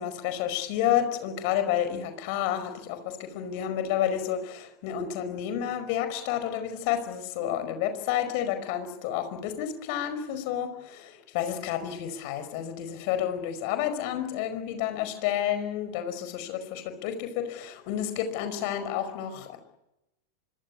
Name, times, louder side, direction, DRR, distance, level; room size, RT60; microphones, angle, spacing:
voice 1, 0.0-19.6, left 10 dB, 45° left, 9 dB, 5.1 m, -30 dB
26.0 x 23.5 x 8.5 m, 0.88 s
figure-of-eight pair, 90°, 0 cm